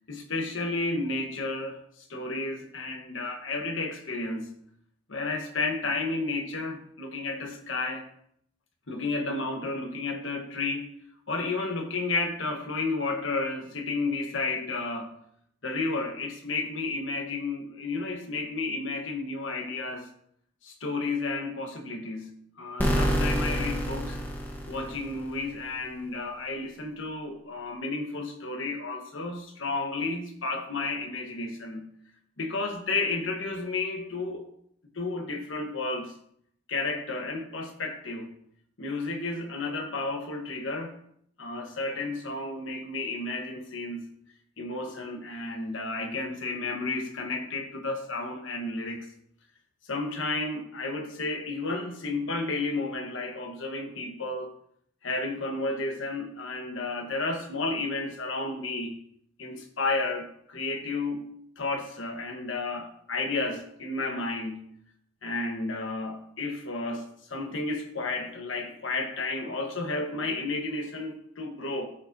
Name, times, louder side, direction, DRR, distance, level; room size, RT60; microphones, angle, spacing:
voice 1, 0.1-1.8 2.1-4.5 5.1-8.1 8.9-10.9 11.3-15.1 15.6-20.1 20.6-24.2 24.7-31.9 32.4-34.4 34.9-36.1 36.7-38.3 38.8-41.0 41.4-44.0 44.6-49.1 49.9-54.5 55.0-58.9 59.4-61.3 61.6-64.7 65.2-71.9, left 3 dB, 65° left, 3 dB, 1.2 m, -32 dB
sound 1, 22.8-25.5, equal, 10° left, 1.1 m, -28 dB
13.0 x 5.0 x 2.7 m, 0.68 s
head